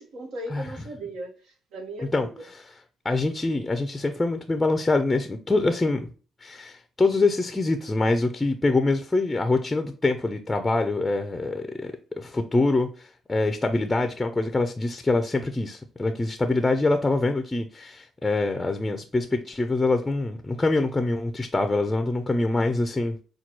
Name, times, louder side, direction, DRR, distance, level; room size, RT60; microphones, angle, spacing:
voice 1, 0.0-2.3, right 1 dB, 80° right, 1.2 m, -37 dB
voice 2, 3.0-6.1 6.4-23.2, left 2 dB, 15° left, 0.4 m, -25 dB
5.7 x 2.3 x 3.0 m
cardioid pair, 90°, 0 cm